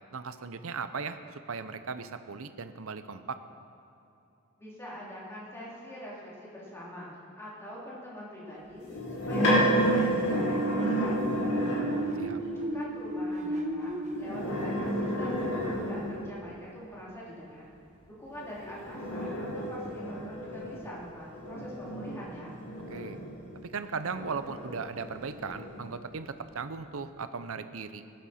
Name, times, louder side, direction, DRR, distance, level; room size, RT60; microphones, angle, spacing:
voice 1, 0.1-1.2 1.5-3.4 12.2-12.4 22.9-23.2 23.7-28.0, right 5 dB, 65° right, 11 dB, 0.7 m, -37 dB
voice 2, 4.6-7.1 7.4-8.8 9.1-12.0 12.4-17.7 18.0-22.6, equal, 10° left, -7 dB, 3.0 m, -44 dB
sound 1, 8.8-12.1 14.1-16.4 18.4-23.6 24.1-25.9, equal, 90° left, 3.5 m, -31 dB
sound 2, 10.2-15.9, right 2 dB, 30° right, 1.0 m, -34 dB
17.5 x 11.0 x 4.3 m, 2.7 s
head